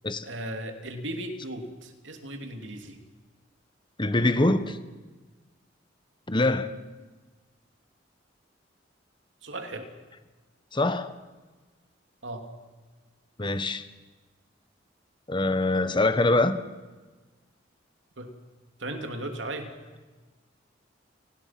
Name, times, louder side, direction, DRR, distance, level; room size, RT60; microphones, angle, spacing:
voice 1, 0.2-3.0 9.4-9.9 12.2-12.5 18.2-18.3 18.8-19.7, right 1 dB, 75° right, 3.1 m, -36 dB
voice 2, 4.0-4.8 6.3-6.8 10.7-11.1 13.4-13.8 15.3-16.6, left 2 dB, 25° left, 1.2 m, -24 dB
30.0 x 19.5 x 6.1 m
head